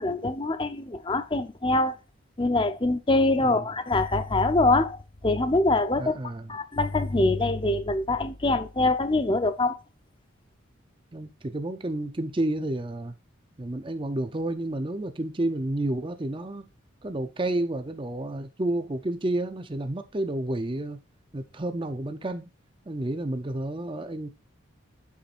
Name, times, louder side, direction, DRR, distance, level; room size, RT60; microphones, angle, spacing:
voice 1, 0.0-2.0 2.4-6.2 6.5-9.8, left 2 dB, 25° left, 0.7 m, -24 dB
voice 2, 6.0-6.6 11.1-13.1 13.6-16.7 17.0-21.0 21.3-22.5 22.9-24.3, right 1 dB, 25° right, 0.6 m, -30 dB
8.4 x 7.1 x 2.5 m
head